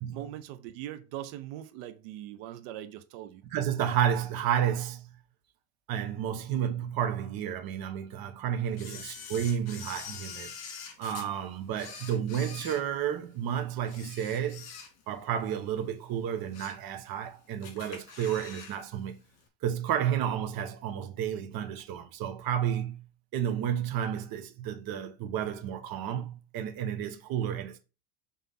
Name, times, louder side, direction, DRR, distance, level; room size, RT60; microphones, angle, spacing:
voice 1, 0.1-3.4 8.8-9.0, right 12 dB, 75° right, 0.9 m, -41 dB
voice 2, 3.5-5.1 5.9-10.5 11.0-14.7 15.1-19.2 19.6-23.0 23.3-27.8, right 9 dB, 50° right, 1.3 m, -31 dB
Camera, 8.8-11.3 11.7-13.4 13.8-15.2 15.6-15.7 16.2-16.9 17.2-17.3 17.6-18.8 19.0-19.1, left 6 dB, 55° left, 2.8 m, -44 dB
5.7 x 3.6 x 5.6 m
supercardioid pair, 125°, 45 cm